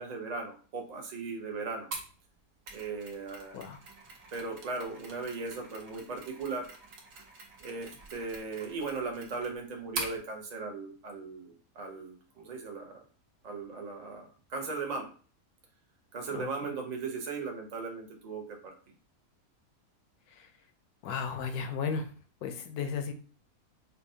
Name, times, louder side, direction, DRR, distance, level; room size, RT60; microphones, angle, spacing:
voice 1, 0.0-1.9 2.7-3.7 4.3-6.6 7.6-13.0 13.4-15.1 16.1-18.7, right 4 dB, 40° right, 2 dB, 0.6 m, -38 dB
Mechanisms, 1.9-10.2, right 3 dB, 65° right, 1.2 m, -44 dB
voice 2, 21.0-22.1 22.4-23.1, left 6 dB, 85° left, 7 dB, 1.1 m, -34 dB
5.4 x 2.2 x 2.6 m, 0.40 s
omnidirectional pair, 1.6 m